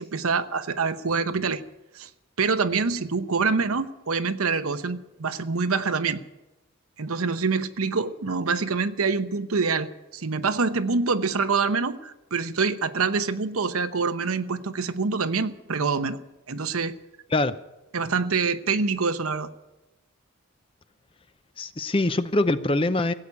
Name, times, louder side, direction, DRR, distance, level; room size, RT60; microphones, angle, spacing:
voice 1, 0.0-1.6 1.9-2.1 2.4-6.2 7.0-16.2 16.5-16.9 17.9-19.5, right 4 dB, 90° right, 10 dB, 0.9 m, -26 dB
voice 2, 21.6-23.1, left 2 dB, 25° left, 12 dB, 0.6 m, -23 dB
16.5 x 8.6 x 9.8 m, 0.99 s
head